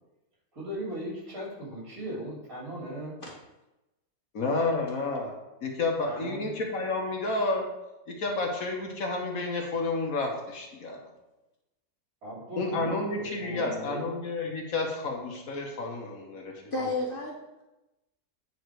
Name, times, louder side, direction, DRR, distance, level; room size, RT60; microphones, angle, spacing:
voice 1, 0.5-3.1 6.0-6.5 12.2-14.2, right 1 dB, 65° right, -5 dB, 3.1 m, -38 dB
voice 2, 4.3-5.4 5.6-7.7 8.1-11.0 12.6-16.9, left 3 dB, 65° left, 1 dB, 1.5 m, -30 dB
voice 3, 16.7-17.6, left 2 dB, 35° left, -2 dB, 1.4 m, -32 dB
9.5 x 3.9 x 4.7 m, 0.97 s
omnidirectional pair, 1.6 m